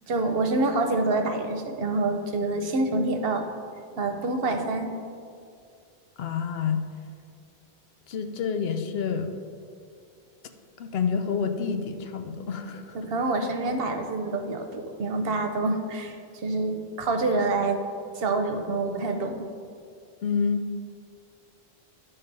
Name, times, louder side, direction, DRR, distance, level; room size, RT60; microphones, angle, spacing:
voice 1, 0.1-3.5 4.0-5.0 12.9-17.8 18.1-19.3, right 2 dB, 70° right, 5 dB, 0.9 m, -27 dB
voice 2, 6.2-6.8 8.1-9.3 10.8-13.0 20.2-20.6, left 6 dB, 75° left, 7 dB, 0.8 m, -28 dB
11.0 x 3.9 x 5.2 m, 2.3 s
omnidirectional pair, 1.1 m